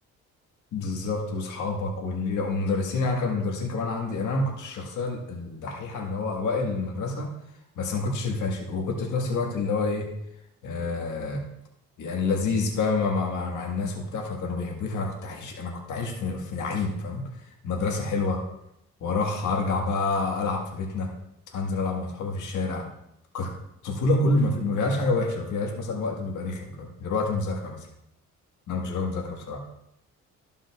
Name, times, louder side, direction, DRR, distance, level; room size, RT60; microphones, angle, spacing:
voice 1, 0.7-7.3 7.7-10.1 10.6-11.4 12.0-17.3 17.6-18.4 19.0-21.1 21.5-22.8 23.3-23.5 23.8-27.8 28.7-29.6, left 3 dB, 80° left, 1 dB, 1.6 m, -28 dB
14.0 x 5.4 x 2.4 m, 0.82 s
cardioid pair, 90°, 30 cm